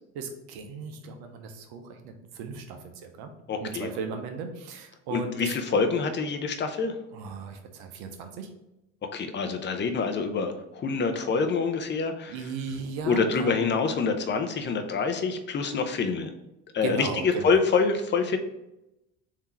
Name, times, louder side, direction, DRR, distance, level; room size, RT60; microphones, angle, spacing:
voice 1, 0.1-3.3 3.6-5.5 7.1-8.5 12.3-13.6 16.8-17.6, right 5 dB, 65° right, 6 dB, 0.8 m, -36 dB
voice 2, 3.5-3.9 5.1-6.9 9.1-12.3 13.0-16.3 16.7-18.4, left 4 dB, 30° left, 7 dB, 0.6 m, -26 dB
3.6 x 2.8 x 4.5 m, 0.90 s
hypercardioid pair, 70°, 39 cm